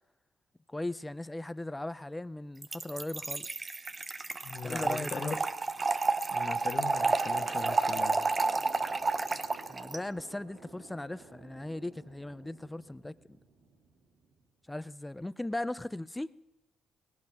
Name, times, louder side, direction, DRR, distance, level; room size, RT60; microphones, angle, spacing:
voice 1, 0.7-3.5 4.6-5.4 9.7-13.2 14.7-16.3, left 1 dB, 10° left, 17 dB, 0.5 m, -38 dB
Trickle dribble / Fill (with liquid), 2.6-10.0, right 3 dB, 30° right, 0.7 m, -31 dB
voice 2, 4.4-5.4 6.3-8.2, left 5 dB, 45° left, 6 dB, 1.4 m, -39 dB
sound 1, 6.9-14.4, right 3 dB, 75° right, 2.5 m, -51 dB
19.0 x 17.0 x 3.5 m, 0.97 s
cardioid pair, 90°, 0 cm